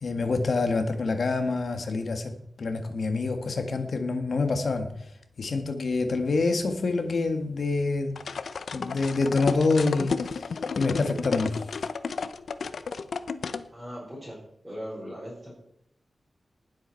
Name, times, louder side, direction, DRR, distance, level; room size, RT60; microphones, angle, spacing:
voice 1, 0.0-5.1 5.4-8.2 8.7-10.5 10.8-11.6, left 3 dB, 60° left, 6 dB, 1.7 m, -27 dB
sound 1, 8.2-13.6, left 5 dB, 80° left, 0.7 m, -32 dB
voice 2, 13.7-14.4 14.6-15.5, equal, 10° right, -8 dB, 5.2 m, -39 dB
19.5 x 8.0 x 4.6 m, 0.72 s
wide cardioid pair, 150°, 0 cm